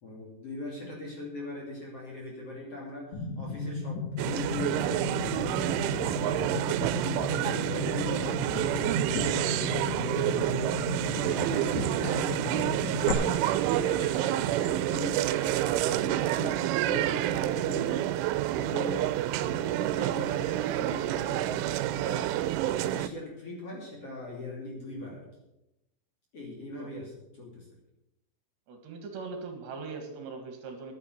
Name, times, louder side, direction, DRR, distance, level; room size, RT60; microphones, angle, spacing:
voice 1, 0.0-6.7 7.0-10.8 11.0-12.7 13.0-16.6 16.9-18.1 18.5-19.1 19.3-22.3 22.6-25.2 26.3-27.7, left 2 dB, 35° left, -2 dB, 3.0 m, -40 dB
sound 1, 3.1-13.1, left 4 dB, 80° left, 1.7 m, -35 dB
sound 2, 4.2-23.1, right 13 dB, 90° right, 3.1 m, -28 dB
voice 2, 28.7-30.9, right 4 dB, 70° right, 4 dB, 3.9 m, -40 dB
10.5 x 9.6 x 7.9 m, 0.89 s
omnidirectional pair, 5.4 m